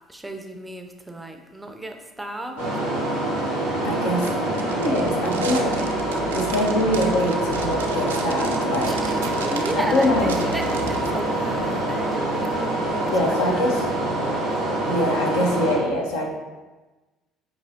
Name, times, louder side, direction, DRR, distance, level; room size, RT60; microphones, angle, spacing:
voice 1, 0.1-2.6 4.0-4.5 8.8-13.9, right 1 dB, 10° right, 5 dB, 0.5 m, -34 dB
sound 1, 2.6-15.8, right 1 dB, 85° left, 1.3 m, -25 dB
voice 2, 3.8-4.3 4.6-5.8 6.3-9.0 9.2-9.3 9.9-10.4 13.1-13.9 14.9-16.3, left 1 dB, 70° left, 0 dB, 0.6 m, -24 dB
sound 2, 4.2-11.1, right 6 dB, 75° right, 0.3 m, -37 dB
Vehicle / Engine, 4.6-14.3, left 1 dB, 35° left, 1.4 m, -41 dB
5.4 x 2.9 x 2.6 m, 1.2 s
figure-of-eight pair, 55°, 0 cm